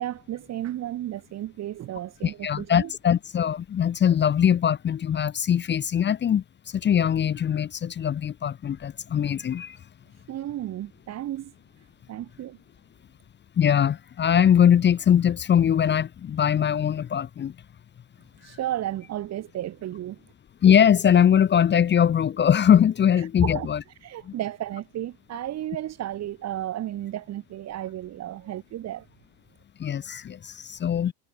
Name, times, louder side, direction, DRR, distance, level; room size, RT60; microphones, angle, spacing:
voice 1, 0.0-2.9 10.3-11.5 12.1-12.6 18.4-20.2 23.4-23.7 24.0-29.1, right 13 dB, 35° right, 1.3 m, -33 dB
voice 2, 2.2-6.4 6.7-9.8 13.6-17.5 20.6-23.8 29.8-31.1, left 9 dB, 25° left, 1.0 m, -21 dB
cardioid pair, 150°, 43 cm